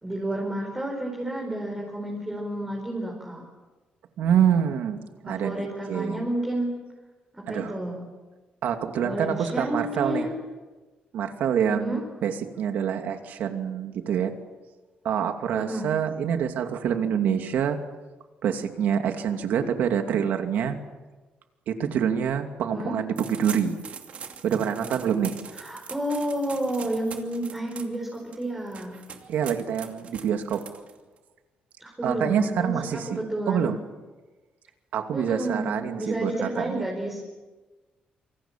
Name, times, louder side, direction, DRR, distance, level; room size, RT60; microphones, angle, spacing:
voice 1, 0.0-3.4 5.2-6.8 7.3-8.1 9.0-10.4 11.6-12.0 15.5-15.9 22.7-22.9 25.6-29.0 31.8-33.7 35.1-37.2, right 1 dB, 10° right, -1 dB, 4.7 m, -30 dB
voice 2, 4.2-6.2 7.5-7.7 8.6-10.3 11.1-14.3 15.0-17.8 18.4-20.8 21.7-23.8 24.4-25.4 29.3-30.6 32.0-33.2 33.5-33.8 34.9-36.8, right 8 dB, 75° right, 6 dB, 2.7 m, -26 dB
sound 1, 23.2-31.2, right 7 dB, 45° right, 2.6 m, -42 dB
27.5 x 25.5 x 7.5 m, 1.2 s
cardioid pair, 175°, 3 cm